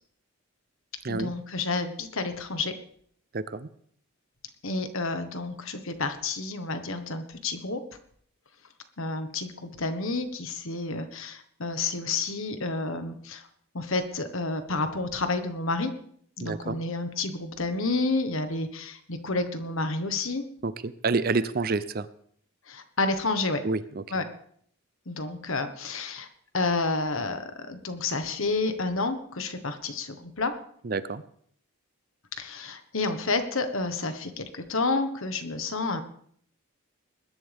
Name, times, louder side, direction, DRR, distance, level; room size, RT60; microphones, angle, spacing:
voice 1, 1.1-2.7 4.6-7.8 9.0-13.5 13.7-15.9 16.4-20.4 22.7-23.6 24.1-24.2 25.1-26.3 26.5-30.5 32.4-36.0, left 3 dB, 70° left, 8 dB, 1.4 m, -30 dB
voice 2, 3.3-3.7 16.4-16.8 20.6-22.1 23.6-24.0 30.8-31.2, right 3 dB, 45° right, 15 dB, 0.6 m, -28 dB
20.5 x 11.5 x 3.5 m, 0.62 s
head